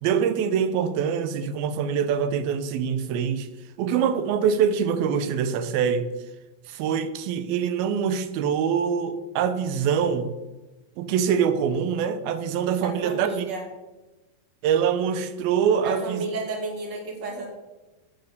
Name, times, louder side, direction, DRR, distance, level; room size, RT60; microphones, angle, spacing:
voice 1, 0.0-3.5 3.8-6.1 6.7-10.3 11.0-13.5 14.6-16.2, right 7 dB, 80° right, 11 dB, 2.7 m, -24 dB
voice 2, 13.0-13.6 15.8-17.5, right 3 dB, 30° right, 1 dB, 2.6 m, -32 dB
10.0 x 8.5 x 6.6 m, 1.1 s
omnidirectional pair, 4.4 m